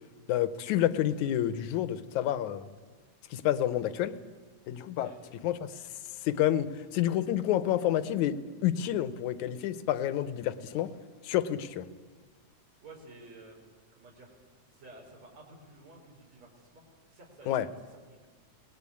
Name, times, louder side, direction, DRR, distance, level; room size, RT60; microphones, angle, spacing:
voice 1, 0.3-2.7 3.3-4.2 4.7-5.1 5.4-5.7 6.2-6.7 6.9-8.4 8.6-10.9 11.2-11.9 17.5-17.7, left 12 dB, 80° left, 13 dB, 2.4 m, -29 dB
voice 2, 12.8-13.6 13.9-14.4 14.7-16.8 17.1-18.3, right 2 dB, 65° right, -2 dB, 5.8 m, -52 dB
28.0 x 20.0 x 8.6 m, 1.5 s
omnidirectional pair, 3.4 m